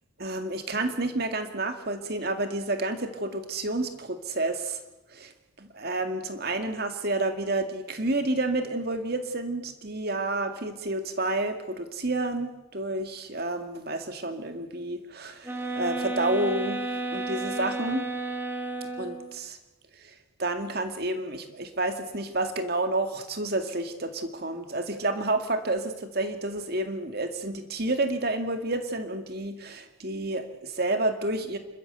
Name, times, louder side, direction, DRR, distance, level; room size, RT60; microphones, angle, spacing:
voice 1, 0.2-4.8 5.1-5.3 5.6-16.8 17.1-18.1 19.0-19.6 20.0-20.1 20.4-31.6, right 2 dB, 50° right, 7 dB, 2.1 m, -30 dB
sound 1, 15.4-19.3, right 2 dB, 10° right, 2.4 m, -32 dB
28.5 x 13.0 x 8.0 m, 1.0 s
head